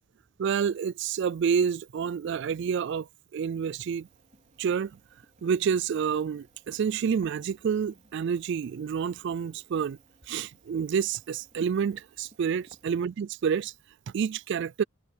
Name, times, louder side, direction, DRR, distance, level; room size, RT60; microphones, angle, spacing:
voice 1, 0.4-3.1 3.3-4.1 4.6-4.9 5.4-10.0 10.3-13.7 14.1-14.8, right 7 dB, 55° right, 0.3 m, -28 dB
sound 1, 4.0-12.9, right 1 dB, 35° right, 3.6 m, -59 dB
head